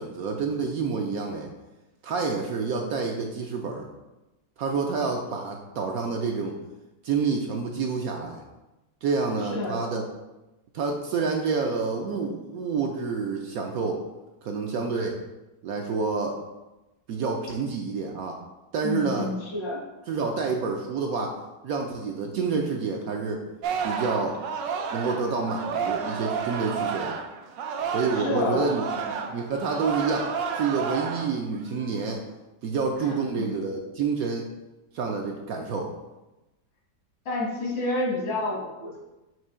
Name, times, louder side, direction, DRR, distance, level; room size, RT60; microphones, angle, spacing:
voice 1, 0.0-1.5 2.0-3.9 4.6-6.5 7.0-8.4 9.0-10.1 10.7-14.0 14.4-15.2 15.6-16.4 17.1-18.4 18.7-19.3 20.1-21.4 21.6-23.5 23.8-24.4 24.9-27.2 27.9-32.2 32.6-34.5 34.9-35.9, right 4 dB, 70° right, 2 dB, 0.9 m, -28 dB
voice 2, 9.5-9.8 18.8-19.8 28.1-28.7 33.0-33.5 37.3-39.0, left 2 dB, 80° left, -2 dB, 2.2 m, -29 dB
Singing, 23.6-28.3 28.6-31.4 31.8-32.1, right 6 dB, 90° right, 1.3 m, -31 dB
6.0 x 2.8 x 5.4 m, 1.0 s
omnidirectional pair, 1.9 m